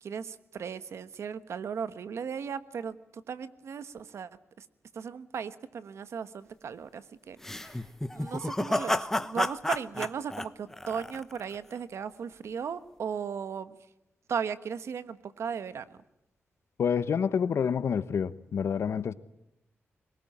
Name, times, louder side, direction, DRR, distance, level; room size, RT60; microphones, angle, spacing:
voice 1, 0.0-4.3 4.6-4.7 4.9-7.8 8.1-13.8 14.3-16.0, right 6 dB, 75° right, 13 dB, 1.2 m, -36 dB
sound 1, 7.4-11.6, left 1 dB, 10° left, 1.0 m, -31 dB
voice 2, 16.8-19.1, left 7 dB, 70° left, 15 dB, 1.1 m, -28 dB
22.5 x 20.0 x 9.9 m, 0.84 s
wide cardioid pair, 110°, 5 cm